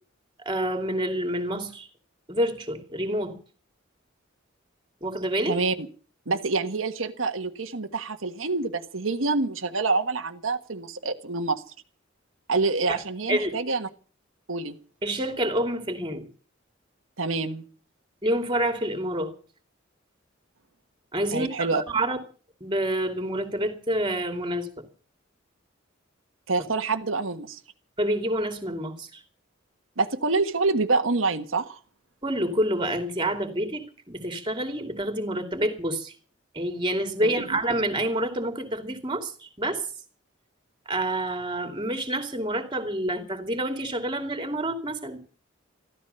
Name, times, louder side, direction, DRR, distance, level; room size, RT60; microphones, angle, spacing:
voice 1, 0.4-1.9 2.3-3.4 5.0-5.6 12.9-13.0 13.3-13.6 15.0-16.2 18.2-19.3 21.1-22.2 22.6-24.8 28.0-29.2 32.2-36.1 36.5-39.9 40.9-45.2, right 1 dB, 25° right, 6 dB, 2.8 m, -28 dB
voice 2, 5.4-5.9 6.3-11.6 12.5-13.9 14.5-14.8 17.2-17.6 21.3-21.8 26.5-27.6 30.0-31.8 37.2-37.6, right 3 dB, 90° right, 5 dB, 1.5 m, -27 dB
14.5 x 13.5 x 6.9 m, 0.41 s
head